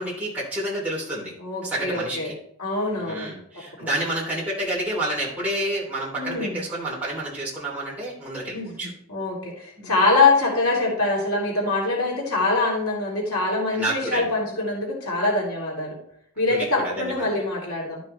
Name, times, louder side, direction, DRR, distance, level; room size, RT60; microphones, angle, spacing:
voice 1, 0.0-1.3 1.6-2.3 3.0-8.9 9.8-9.9 13.7-14.3 16.5-17.4, right 1 dB, 5° right, -7 dB, 3.0 m, -29 dB
voice 2, 1.4-2.3 2.6-3.3 3.8-3.9 6.2-6.6 8.5-8.7 9.1-16.0 16.4-18.0, left 3 dB, 90° left, -3 dB, 3.0 m, -24 dB
12.0 x 6.1 x 3.3 m, 0.67 s
head